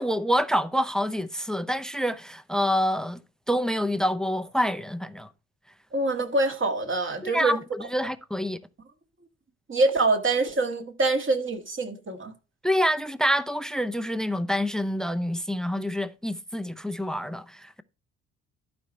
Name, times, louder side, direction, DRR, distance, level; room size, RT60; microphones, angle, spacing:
voice 1, 0.0-3.2 3.5-5.3 7.2-8.6 12.6-17.8, equal, ahead, 0.6 m, -27 dB
voice 2, 5.9-7.6 9.7-12.3, right 3 dB, 35° right, 2.0 m, -25 dB
12.0 x 5.1 x 4.3 m
figure-of-eight pair, 50°, 36 cm